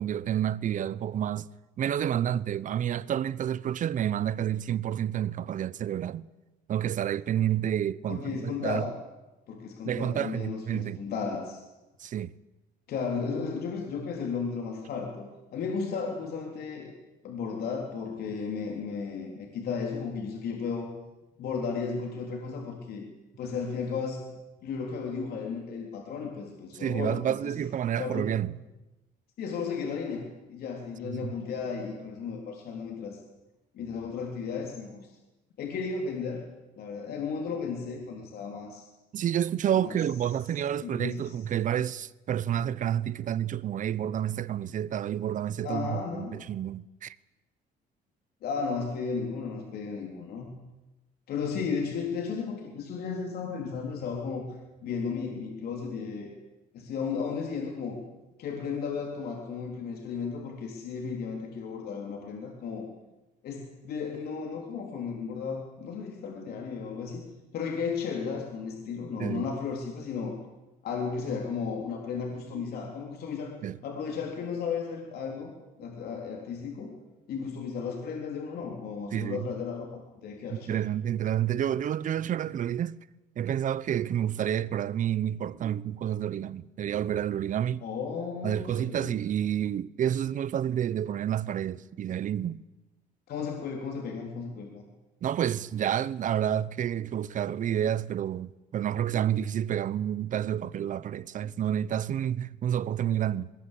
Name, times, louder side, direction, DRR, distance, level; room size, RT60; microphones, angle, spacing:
voice 1, 0.0-1.5 1.8-6.3 6.7-8.8 9.9-11.0 12.0-12.3 26.7-28.5 31.0-31.3 39.1-47.2 69.2-69.5 72.5-72.6 73.6-73.8 79.1-79.5 80.5-83.0 83.4-87.8 88.4-92.6 95.2-103.5, right 10 dB, 50° right, 0.8 m, -29 dB
voice 2, 8.1-8.9 9.5-11.6 12.9-16.9 17.2-20.9 21.4-23.1 23.4-24.2 24.6-27.5 28.0-28.3 29.4-33.2 33.7-35.2 35.6-36.4 36.8-38.8 39.8-39.9 40.8-41.4 45.6-46.4 48.4-50.6 51.3-54.5 54.8-56.3 56.7-58.0 58.4-62.9 63.4-67.3 67.5-70.4 70.8-73.5 73.8-75.5 75.8-76.9 77.3-80.8 87.8-89.2 93.3-94.8, left 5 dB, 65° left, 3.9 m, -34 dB
22.0 x 20.0 x 8.5 m
cardioid pair, 110°, 17 cm